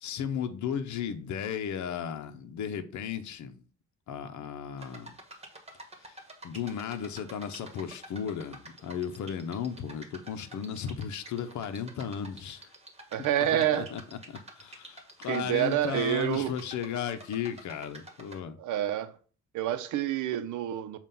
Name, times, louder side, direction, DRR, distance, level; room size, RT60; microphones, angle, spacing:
voice 1, 0.0-3.6 4.1-5.1 6.0-6.2 6.4-12.7 13.4-14.0 14.3-18.6, left 8 dB, 70° left, 0.8 m, -35 dB
sound 1, 4.8-18.4, right 2 dB, 20° right, 1.3 m, -49 dB
voice 2, 13.1-13.9 15.3-16.6 18.6-19.2 19.5-21.0, right 11 dB, 80° right, 0.7 m, -28 dB
7.3 x 2.4 x 5.3 m
cardioid pair, 90°, 30 cm